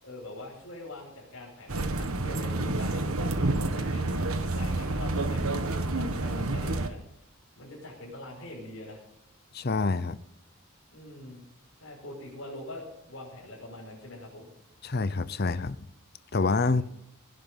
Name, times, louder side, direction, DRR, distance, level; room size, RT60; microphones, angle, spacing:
voice 1, 0.0-7.2 7.6-9.0 10.9-11.4 11.8-14.5 16.7-16.8, left 1 dB, 65° left, -4 dB, 5.7 m, -43 dB
sound 1, 1.7-6.9, right 2 dB, 85° right, 1.5 m, -29 dB
voice 2, 9.5-10.2 14.8-15.8 16.3-16.8, left 3 dB, 45° left, 15 dB, 0.6 m, -26 dB
17.5 x 11.0 x 5.5 m, 0.82 s
head